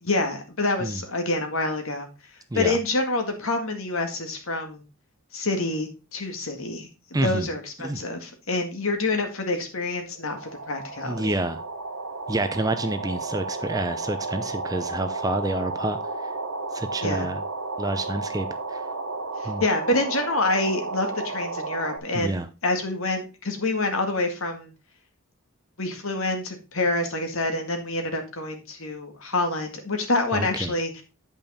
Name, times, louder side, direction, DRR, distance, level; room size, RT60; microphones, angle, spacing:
voice 1, 0.0-2.1 2.5-4.8 5.3-11.4 17.0-17.3 19.4-24.7 25.8-31.0, left 2 dB, 70° left, 5 dB, 1.9 m, -27 dB
voice 2, 7.1-7.5 7.8-8.0 11.0-11.6 12.3-16.0 16.7-17.4 17.8-18.8 19.4-19.6 22.1-22.5 30.3-30.7, right 2 dB, 15° right, 10 dB, 0.6 m, -28 dB
sound 1, 9.8-9.9 10.1-22.0, right 3 dB, 80° right, 1.6 m, -33 dB
8.8 x 5.6 x 4.2 m, 0.30 s
head